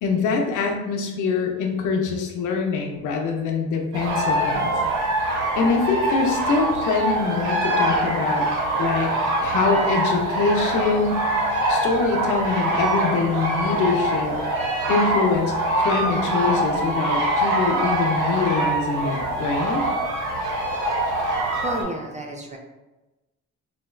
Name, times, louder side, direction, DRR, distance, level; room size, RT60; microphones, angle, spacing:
voice 1, 0.0-4.7 5.6-8.5 8.8-9.1 9.4-11.3 11.7-14.4 14.9-19.8, left 4 dB, 80° left, 2 dB, 0.6 m, -24 dB
sound 1, 3.9-21.8, right 1 dB, 80° right, 1.0 m, -24 dB
voice 2, 21.6-22.6, right 1 dB, 25° right, 1 dB, 0.5 m, -30 dB
4.0 x 2.1 x 2.2 m, 1.1 s
cardioid pair, 90°, 30 cm